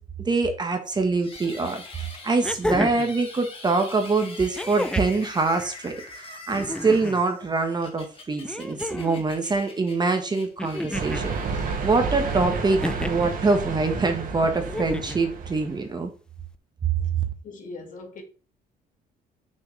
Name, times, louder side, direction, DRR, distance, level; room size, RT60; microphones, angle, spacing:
voice 1, 0.2-16.1, right 3 dB, 25° right, 1.3 m, -24 dB
sound 1, 1.2-12.5, left 3 dB, 30° left, 1.9 m, -44 dB
sound 2, 1.4-1.5 2.4-3.1 4.6-5.2 6.5-7.2 8.4-9.2 10.6-11.3 12.8-13.3 14.6-15.2 16.5-16.6, left 1 dB, 5° left, 0.4 m, -31 dB
sound 3, 10.9-15.8, right 4 dB, 55° right, 1.4 m, -30 dB
voice 2, 17.4-18.2, left 3 dB, 50° left, 1.9 m, -40 dB
6.1 x 6.1 x 3.3 m
cardioid pair, 110°, 17 cm